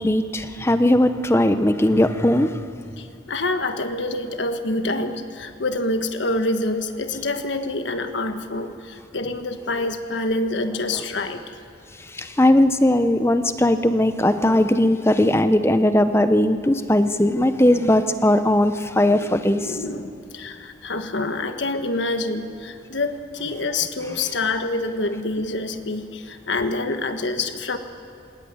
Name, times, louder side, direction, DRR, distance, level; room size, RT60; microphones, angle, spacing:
voice 1, 0.0-2.6 8.5-8.7 12.0-19.8, left 1 dB, 15° left, 10 dB, 0.6 m, -19 dB
voice 2, 3.0-11.6 19.5-27.8, left 2 dB, 70° left, 7 dB, 1.4 m, -26 dB
20.0 x 18.5 x 9.6 m, 2.5 s
head